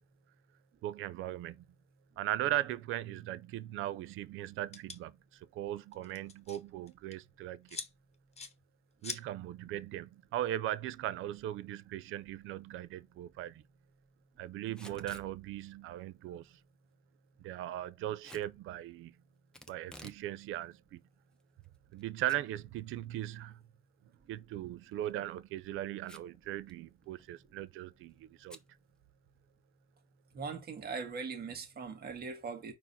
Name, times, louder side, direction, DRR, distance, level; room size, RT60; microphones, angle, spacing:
voice 1, 0.8-1.6 2.2-7.8 9.0-13.6 14.4-16.6 17.4-19.1 19.7-21.0 21.9-23.6 24.3-28.6, right 13 dB, 90° right, 0.5 m, -38 dB
sound 1, 4.7-5.0 5.9-6.6 6.9-7.1 7.7-7.9 8.4-8.5 9.0-9.2, left 5 dB, 30° left, 1.0 m, -42 dB
Packing tape duct tape / Tearing, 14.7-15.3 18.2-18.5 19.5-20.2 20.6-20.7 21.4-22.0 22.3-22.4 22.8-22.9 24.8-25.1 26.0-26.4 26.7-26.8 27.0-27.4 28.5-28.7, left 1 dB, 5° left, 1.0 m, -52 dB
voice 2, 30.3-32.7, right 5 dB, 50° right, 1.9 m, -40 dB
4.6 x 3.8 x 5.7 m
cardioid pair, 90°, 20 cm